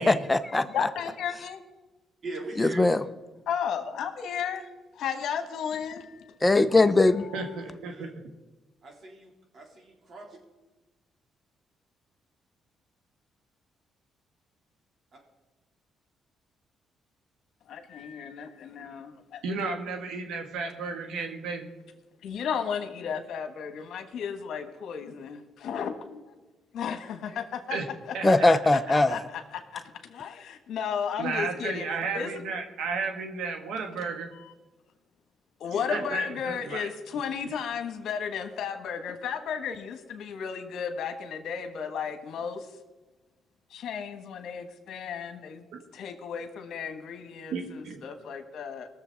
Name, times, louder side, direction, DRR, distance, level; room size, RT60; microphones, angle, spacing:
voice 1, 0.0-0.9 2.6-3.0 6.4-7.3 28.2-29.2, left 2 dB, 15° left, 10 dB, 0.7 m, -21 dB
voice 2, 0.7-1.6 3.5-4.7 4.9-6.3 6.7-6.8 7.1-7.5 17.7-19.4 22.2-26.2 26.7-27.8 28.2-31.8 32.1-32.3 34.3-34.5 35.6-42.7 43.7-45.6 45.9-48.9, left 7 dB, 75° left, 7 dB, 1.4 m, -34 dB
voice 3, 2.2-2.9 7.4-7.6 7.8-8.1 8.8-10.4 35.7-36.4 36.6-36.7, right 2 dB, 50° right, 0 dB, 3.5 m, -41 dB
voice 4, 7.3-8.1 19.4-21.7 27.7-27.9 28.1-28.8 31.2-34.3 35.9-36.9 47.5-48.0, right 4 dB, 85° right, 5 dB, 1.6 m, -33 dB
20.5 x 7.1 x 4.1 m, 1.2 s
cardioid pair, 90°, 0 cm